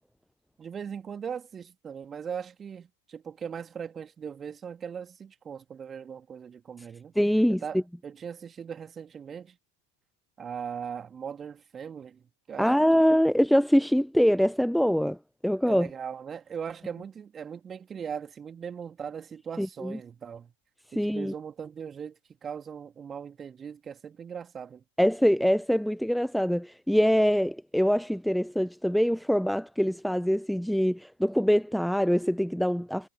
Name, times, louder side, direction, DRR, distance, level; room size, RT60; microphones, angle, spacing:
voice 1, 0.6-7.1 7.5-9.6 10.4-13.2 15.7-20.5 20.9-24.8, right 7 dB, 20° right, 2.8 m, -39 dB
voice 2, 7.2-7.6 12.6-15.2 15.4-15.9 19.6-20.0 21.0-21.3 25.0-33.1, equal, ahead, 0.9 m, -24 dB
figure-of-eight pair, 90°, 0 cm